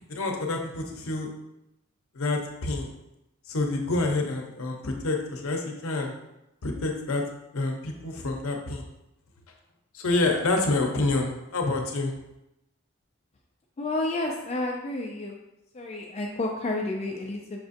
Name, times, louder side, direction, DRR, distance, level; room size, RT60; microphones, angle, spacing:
voice 1, 0.1-1.3 2.1-2.9 3.5-6.1 6.6-7.2 7.5-8.8 9.9-12.1, left 2 dB, 80° left, 2 dB, 0.6 m, -27 dB
voice 2, 13.8-15.3 15.7-17.6, left 2 dB, 30° left, 1 dB, 0.3 m, -30 dB
5.9 x 2.6 x 2.5 m, 0.90 s
head